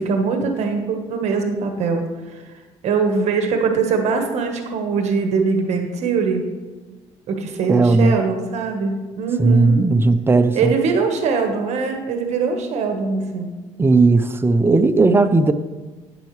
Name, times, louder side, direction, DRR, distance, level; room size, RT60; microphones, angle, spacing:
voice 1, 0.0-2.4 2.8-6.4 7.3-9.8 10.5-13.5, right 5 dB, 65° right, 4 dB, 1.3 m, -22 dB
voice 2, 7.7-8.2 9.4-10.7 13.8-15.5, right 3 dB, 20° right, 10 dB, 0.5 m, -16 dB
12.0 x 9.4 x 3.2 m, 1.3 s
cardioid pair, 115°, 12 cm